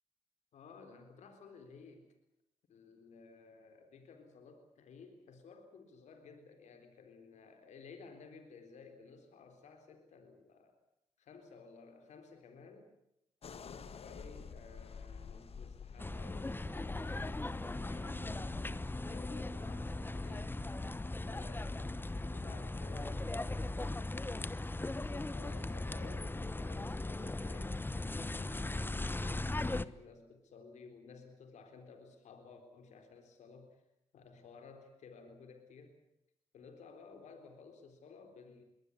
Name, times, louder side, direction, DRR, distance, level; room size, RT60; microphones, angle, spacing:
voice 1, 0.5-2.1 2.7-10.8 11.2-12.9 13.4-20.5 21.2-22.0 22.3-24.6 25.1-33.8 34.1-36.0 36.5-38.6, left 4 dB, 85° left, 6 dB, 3.9 m, -55 dB
sound 1, 13.4-22.5, left 6 dB, 55° left, 1.5 m, -51 dB
sound 2, 16.0-29.8, left 2 dB, 15° left, 1.0 m, -38 dB
22.5 x 19.0 x 9.7 m, 0.81 s
cardioid pair, 65°, 12 cm